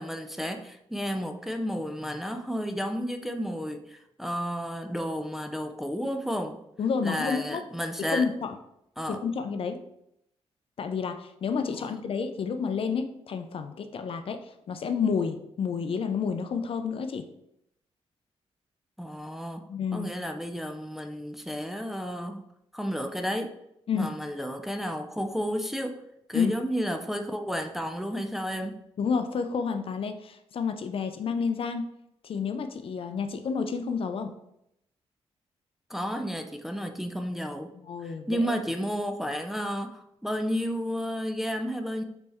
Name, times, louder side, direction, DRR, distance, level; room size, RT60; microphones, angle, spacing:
voice 1, 0.0-6.6 7.0-8.3 9.0-9.2 11.7-11.9 19.0-19.7 19.9-22.4 22.7-23.6 23.9-26.0 26.3-28.8 35.9-37.7 38.0-42.0, equal, 5° right, 5 dB, 0.4 m, -32 dB
voice 2, 6.8-7.6 8.1-8.6 9.1-9.8 10.8-17.3 19.7-20.1 23.9-24.1 26.3-26.5 29.0-31.9 32.2-34.3 37.9-38.5, left 6 dB, 55° left, 8 dB, 0.4 m, -30 dB
4.0 x 3.3 x 3.4 m, 0.79 s
cardioid pair, 90°, 11 cm